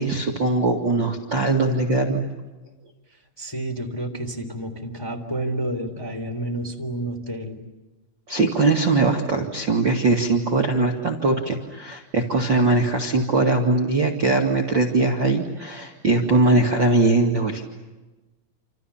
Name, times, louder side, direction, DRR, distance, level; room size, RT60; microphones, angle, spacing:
voice 1, 0.0-2.2 8.3-17.6, right 3 dB, 35° right, 1 dB, 2.2 m, -21 dB
voice 2, 3.4-7.6, right 1 dB, 5° left, 2 dB, 2.7 m, -30 dB
28.5 x 28.5 x 7.2 m, 1.1 s
omnidirectional pair, 4.5 m